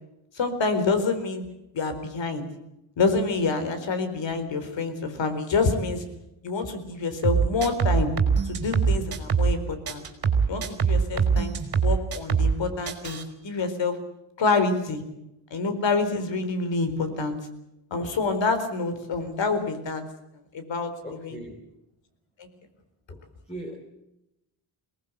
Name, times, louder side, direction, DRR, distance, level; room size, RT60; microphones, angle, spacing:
voice 1, 0.3-1.4 1.7-2.5 3.0-6.0 6.4-8.1 8.5-10.0 10.5-11.5 11.8-13.2 13.4-14.0 14.4-15.0 15.5-17.4 17.9-20.0 20.5-21.4 22.4-22.5, left 4 dB, 60° left, 9 dB, 4.2 m, -27 dB
sound 1, 7.2-9.6 9.9-12.6 12.9-13.2, right 6 dB, 45° right, 3.8 m, -23 dB
voice 2, 21.0-21.6 23.1-23.8, right 1 dB, 15° left, 2 dB, 3.8 m, -40 dB
22.5 x 19.0 x 8.1 m, 0.88 s
cardioid pair, 105°, 49 cm